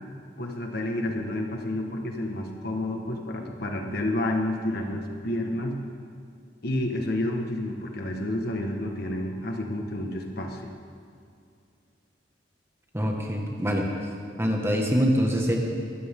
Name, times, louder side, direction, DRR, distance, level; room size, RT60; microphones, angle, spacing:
voice 1, 0.4-5.8 6.6-10.7, left 1 dB, 60° left, 3 dB, 1.7 m, -30 dB
voice 2, 12.9-13.9 14.4-15.6, equal, 15° right, 0 dB, 1.8 m, -24 dB
23.0 x 14.5 x 3.8 m, 2.4 s
head